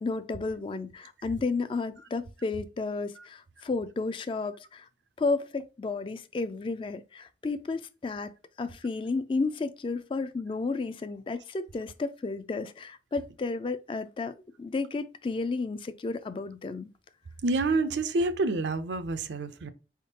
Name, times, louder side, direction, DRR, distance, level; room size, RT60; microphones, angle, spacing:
voice 1, 0.0-4.8 5.2-8.3 8.6-14.3 14.6-16.9, left 3 dB, 30° left, 0.3 m, -32 dB
voice 2, 17.4-19.7, right 3 dB, 85° right, 0.5 m, -28 dB
4.5 x 3.5 x 2.8 m
head